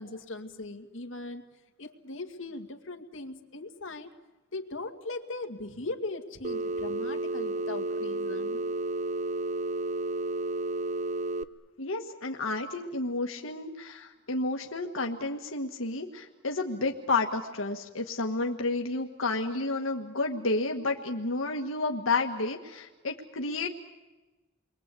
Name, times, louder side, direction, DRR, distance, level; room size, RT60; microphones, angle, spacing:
voice 1, 0.0-1.4 1.8-4.1 4.5-8.6, left 2 dB, 70° left, 5 dB, 2.2 m, -39 dB
Telephone, 6.4-11.4, right 2 dB, 35° right, 0.9 m, -32 dB
voice 2, 11.8-23.7, left 3 dB, 90° left, 2 dB, 1.6 m, -31 dB
30.0 x 22.5 x 8.4 m, 1.2 s
head